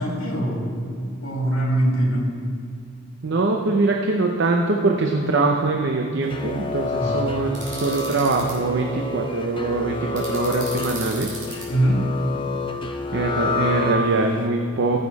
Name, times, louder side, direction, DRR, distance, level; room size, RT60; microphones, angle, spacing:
voice 1, 0.0-2.2 7.0-7.2 11.7-12.0, right 1 dB, 80° left, -2 dB, 2.7 m, -23 dB
voice 2, 3.2-11.4 13.1-15.0, right 3 dB, 60° right, 2 dB, 0.7 m, -23 dB
sound 1, 6.2-14.4, left 3 dB, 25° left, 0.6 m, -29 dB
sound 2, 7.5-8.5 10.2-11.6, right 3 dB, 40° right, 3.0 m, -35 dB
15.0 x 6.7 x 4.1 m, 2.2 s
head